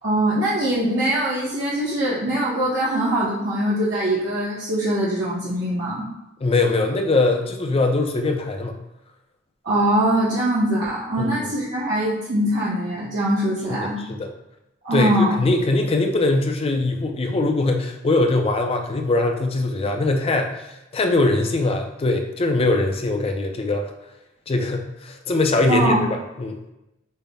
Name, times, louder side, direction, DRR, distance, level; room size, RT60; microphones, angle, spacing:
voice 1, 0.0-6.0 9.6-14.0 14.8-15.3 25.7-26.0, right 1 dB, 55° right, -8 dB, 0.8 m, -22 dB
voice 2, 6.4-8.8 11.2-11.5 13.7-14.3 14.9-23.9 24.5-26.6, left 2 dB, 30° left, 4 dB, 0.4 m, -22 dB
5.4 x 2.0 x 3.4 m, 0.94 s
head